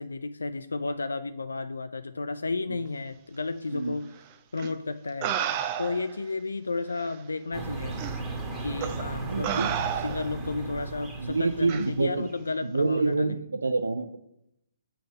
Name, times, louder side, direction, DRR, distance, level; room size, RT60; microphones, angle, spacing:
voice 1, 0.0-4.1 4.5-5.4 5.8-8.0 8.6-9.5 10.0-13.3, left 3 dB, 80° left, 10 dB, 0.4 m, -32 dB
sound 1, 4.6-4.7 5.2-6.2 7.0-7.1 8.0-8.2 8.8-9.0 9.4-10.4 11.7-11.9, right 9 dB, 35° right, 0.7 m, -31 dB
sound 2, 7.5-12.4, right 3 dB, 20° right, 1.7 m, -36 dB
voice 2, 9.2-9.8 10.4-10.7 11.2-12.3 12.6-14.2, right 3 dB, 80° right, 9 dB, 0.5 m, -27 dB
7.0 x 5.1 x 5.2 m, 0.77 s
figure-of-eight pair, 130°, 0 cm